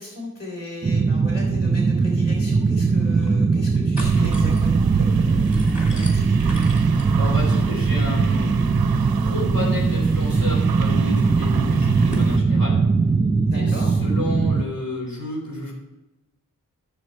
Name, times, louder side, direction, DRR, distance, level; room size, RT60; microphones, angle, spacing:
voice 1, 0.0-5.6 5.9-6.6 13.4-13.9, left 1 dB, 40° left, -3 dB, 3.5 m, -37 dB
sound 1, 0.8-14.6, right 4 dB, 20° right, 0.6 m, -20 dB
sound 2, 2.3-2.4 2.9-3.4 3.7-12.3, equal, 20° left, 2.7 m, -43 dB
sound 3, 4.0-12.4, right 9 dB, 85° right, 0.5 m, -29 dB
voice 2, 7.2-8.7 9.1-12.8 13.5-15.7, left 2 dB, 70° left, -5 dB, 3.9 m, -31 dB
9.7 x 7.1 x 4.5 m, 1.0 s
wide cardioid pair, 55°, 35 cm